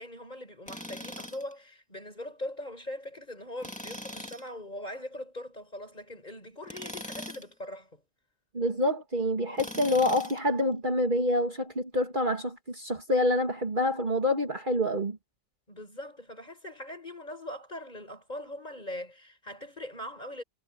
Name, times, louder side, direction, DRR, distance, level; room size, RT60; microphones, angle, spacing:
voice 1, 0.0-8.0 15.7-20.4, left 1 dB, 35° left, 6.0 m, -41 dB
Tools, 0.7-1.5 3.6-4.5 6.6-7.5 9.5-10.5, left 1 dB, 5° left, 2.4 m, -41 dB
voice 2, 8.5-15.2, left 1 dB, 40° right, 2.5 m, -27 dB
omnidirectional pair, 1.3 m